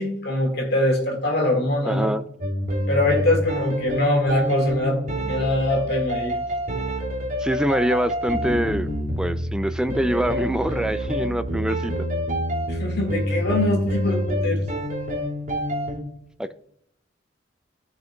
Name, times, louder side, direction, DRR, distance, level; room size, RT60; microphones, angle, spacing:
voice 1, 0.0-2.1 2.9-5.0 5.3-6.4 12.7-14.6, left 1 dB, 60° left, 1.9 m, -23 dB
voice 2, 1.9-2.2 7.4-8.9 9.2-12.1 16.4-16.5, equal, 5° right, 0.3 m, -24 dB
sound 1, 2.4-16.0, equal, 45° right, 2.8 m, -27 dB
14.0 x 5.8 x 2.3 m
head